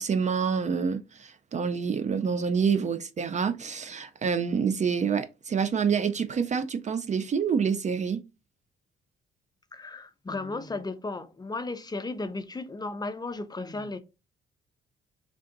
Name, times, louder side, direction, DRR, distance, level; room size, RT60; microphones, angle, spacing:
voice 1, 0.0-8.2, right 6 dB, 35° right, 0.4 m, -27 dB
voice 2, 9.7-14.0, left 3 dB, 20° left, 0.5 m, -35 dB
3.4 x 2.6 x 3.7 m
cardioid pair, 90°, 20 cm